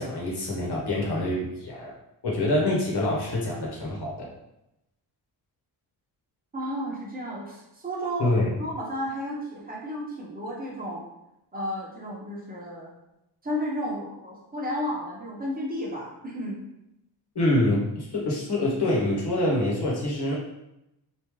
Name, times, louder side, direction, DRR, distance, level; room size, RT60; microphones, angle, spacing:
voice 1, 0.0-1.9 2.2-4.3 8.2-8.4 17.3-20.3, left 1 dB, 65° left, -4 dB, 1.2 m, -25 dB
voice 2, 6.5-8.3 8.6-11.0 11.5-13.0 13.4-16.6, equal, 20° right, -4 dB, 1.0 m, -33 dB
3.5 x 2.6 x 3.1 m, 0.88 s
wide cardioid pair, 115°, 43 cm